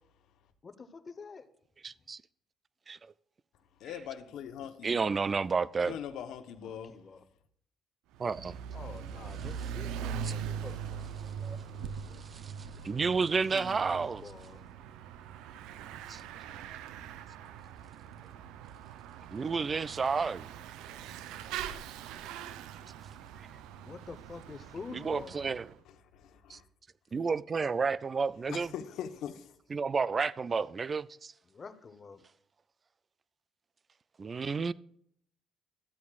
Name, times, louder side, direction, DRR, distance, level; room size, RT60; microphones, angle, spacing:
voice 1, 0.6-1.5 6.9-7.2 8.7-12.2 13.5-14.7 23.8-25.4 31.5-32.2, left 4 dB, 30° left, 1.0 m, -48 dB
voice 2, 1.8-2.2 2.9-3.0 4.8-6.0 8.2-8.5 10.2-10.3 11.4-11.6 12.3-12.5 12.8-14.2 16.1-16.2 19.3-20.5 24.9-25.7 26.5-26.6 27.1-28.7 29.7-31.3 34.2-34.7, right 5 dB, 30° right, 0.4 m, -31 dB
voice 3, 3.8-5.1 5.9-6.9 25.8-26.7 28.4-29.5, left 9 dB, 70° left, 1.0 m, -42 dB
Bicycle / Mechanisms, 8.1-25.7, right 8 dB, 85° right, 0.6 m, -42 dB
13.5 x 8.3 x 2.4 m
cardioid pair, 105°, 0 cm